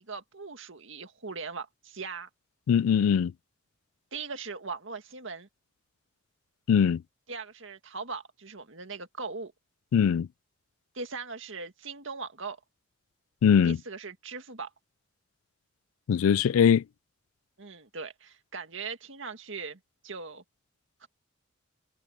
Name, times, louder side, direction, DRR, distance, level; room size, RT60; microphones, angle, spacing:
voice 1, 0.0-2.3 4.1-5.5 7.3-9.5 10.9-12.6 13.6-14.7 17.6-20.4 21.0-21.1, right 4 dB, 70° right, 2.0 m, -40 dB
voice 2, 2.7-3.3 6.7-7.0 9.9-10.3 13.4-13.8 16.1-16.8, left 7 dB, 90° left, 0.3 m, -21 dB
head